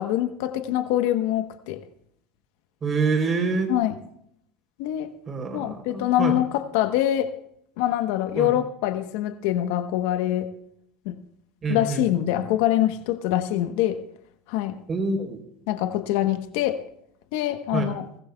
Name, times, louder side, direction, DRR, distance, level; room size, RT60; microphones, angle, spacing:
voice 1, 0.0-1.8 3.7-4.0 4.8-5.1 5.5-7.3 7.8-10.5 11.0-11.2 11.7-14.0 14.5-14.8 15.7-16.8 17.3-18.1, left 13 dB, 70° left, 1.0 m, -24 dB
voice 2, 2.8-3.7 5.3-6.4 8.4-8.6 11.6-12.0 14.9-15.4 17.7-17.9, right 4 dB, 30° right, 3.4 m, -26 dB
23.0 x 15.0 x 2.3 m
supercardioid pair, 110°, 0 cm